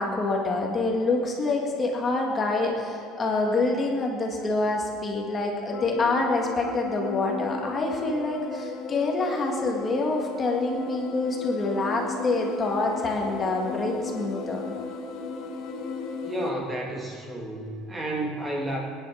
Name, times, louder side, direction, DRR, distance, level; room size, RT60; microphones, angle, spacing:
voice 1, 0.0-14.6, left 2 dB, 20° left, 0 dB, 1.9 m, -26 dB
sound 1, 5.7-16.5, left 4 dB, 55° left, 1.7 m, -35 dB
voice 2, 16.2-18.8, right 1 dB, 15° right, 0 dB, 1.7 m, -31 dB
20.5 x 10.5 x 6.5 m, 2.4 s
cardioid pair, 170°, 0 cm